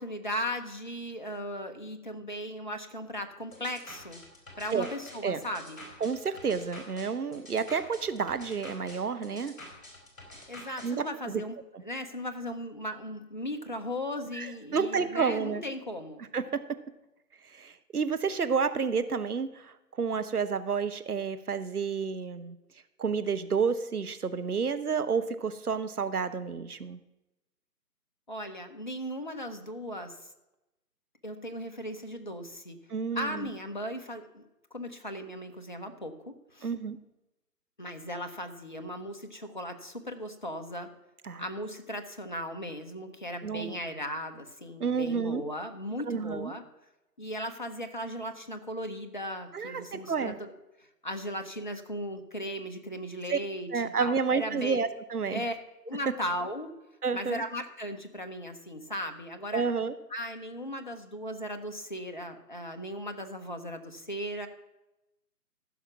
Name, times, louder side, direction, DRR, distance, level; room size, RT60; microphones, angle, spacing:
voice 1, 0.0-4.2 4.6-5.9 10.5-16.2 28.3-30.2 31.2-32.8 33.1-34.4 34.7-36.7 37.8-40.9 41.4-46.6 47.2-50.5 50.8-54.8 55.3-55.5 55.8-56.7 57.1-59.6 60.1-64.5, equal, 30° left, 6 dB, 0.7 m, -37 dB
sound 1, 3.5-10.9, left 1 dB, 50° left, 3.9 m, -48 dB
voice 2, 6.0-9.5 10.8-11.4 14.4-15.6 16.3-16.8 17.5-22.6 23.0-27.0 32.9-33.5 36.6-37.0 41.2-41.4 43.4-43.7 44.8-45.4 46.1-46.5 49.5-50.4 53.3-53.4 53.7-55.4 57.0-57.4 59.5-59.9, right 5 dB, 65° right, 11 dB, 1.0 m, -30 dB
14.5 x 5.9 x 5.9 m, 0.95 s
figure-of-eight pair, 155°, 48 cm